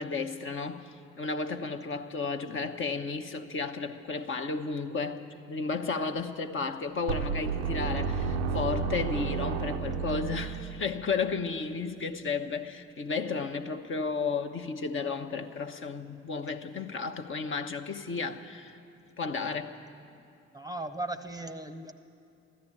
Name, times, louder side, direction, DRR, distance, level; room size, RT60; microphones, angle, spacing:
voice 1, 0.0-18.8 19.2-19.8, left 4 dB, 40° left, 6 dB, 0.9 m, -33 dB
sound 1, 6.8-11.8, left 5 dB, 80° left, 0.5 m, -42 dB
sound 2, 7.1-11.1, right 7 dB, 75° right, 0.6 m, -32 dB
voice 2, 20.5-21.9, right 2 dB, 10° right, 9 dB, 0.8 m, -37 dB
14.5 x 12.0 x 8.6 m, 2.6 s
figure-of-eight pair, 45°, 32 cm